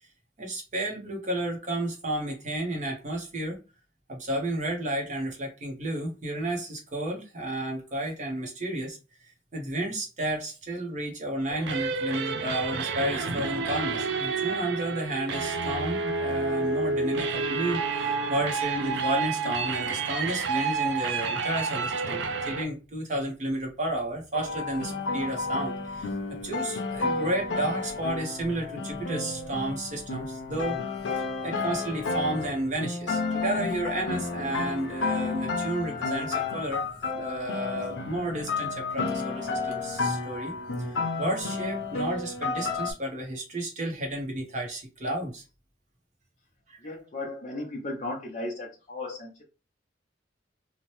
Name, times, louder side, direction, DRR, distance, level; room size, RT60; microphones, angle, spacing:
voice 1, 0.4-3.6 4.1-9.0 9.5-26.1 26.4-30.8 31.4-36.9 37.1-40.5 41.2-45.4 46.7-46.9, right 1 dB, 40° right, 0.7 m, -32 dB
sound 1, 11.5-22.6, right 4 dB, 75° right, 0.4 m, -29 dB
sound 2, 24.3-42.9, left 4 dB, 85° left, 0.6 m, -31 dB
voice 2, 46.8-49.4, left 2 dB, 40° left, 0.6 m, -36 dB
2.8 x 2.1 x 3.0 m
head